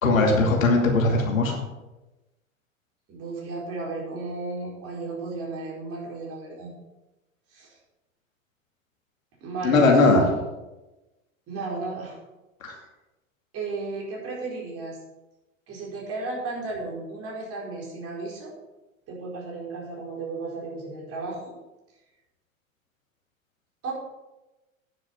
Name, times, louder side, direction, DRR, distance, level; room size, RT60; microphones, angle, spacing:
voice 1, 0.0-1.6 9.6-10.2 12.6-12.7, left 3 dB, 75° left, 1 dB, 2.6 m, -19 dB
voice 2, 3.1-6.7 7.5-7.8 9.4-10.3 11.5-12.2 13.5-15.0 15.7-18.5 19.1-21.4 23.8-23.9, right 3 dB, 35° right, -3 dB, 4.5 m, -34 dB
9.9 x 7.4 x 6.0 m, 1.0 s
hypercardioid pair, 95°, 40 cm